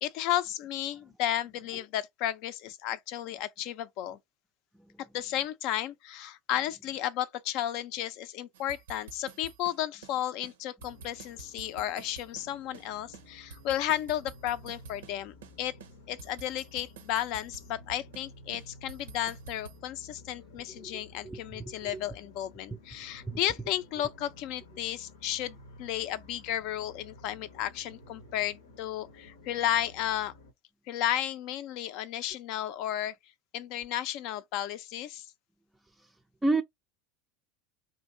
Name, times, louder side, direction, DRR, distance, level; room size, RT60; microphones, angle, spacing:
voice 1, 0.0-4.2 5.1-15.8 16.1-30.3 30.9-33.1 33.5-35.3, left 12 dB, 60° left, 0.5 m, -33 dB
sound 1, 8.5-10.2 10.4-10.5 10.8-12.9 13.1-15.2 15.4-15.5 15.8-18.3 18.5-19.8, right 6 dB, 80° right, 0.6 m, -49 dB
sound 2, 10.8-30.5, left 1 dB, 90° left, 0.8 m, -53 dB
voice 2, 21.2-21.9 36.4-36.6, right 2 dB, 10° right, 0.4 m, -29 dB
2.8 x 2.7 x 3.8 m
hypercardioid pair, 85°, 0 cm